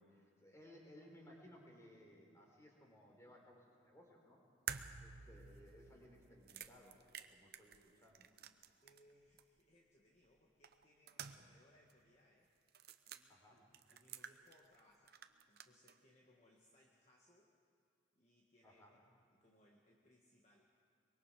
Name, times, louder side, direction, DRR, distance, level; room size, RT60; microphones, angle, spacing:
voice 1, 0.0-4.4 5.0-8.3 13.3-13.6 18.6-19.0, left 1 dB, 15° left, -1 dB, 3.9 m, -62 dB
sound 1, 4.7-9.1 9.4-9.5 10.6-11.6 11.9-12.0 12.7-13.2 13.7-14.8 15.1-16.0, right 8 dB, 55° right, 0.8 m, -51 dB
voice 2, 8.8-12.5 13.1-17.5 18.1-20.8, left 1 dB, 35° left, -2 dB, 1.6 m, -71 dB
24.0 x 22.5 x 5.0 m, 2.4 s
head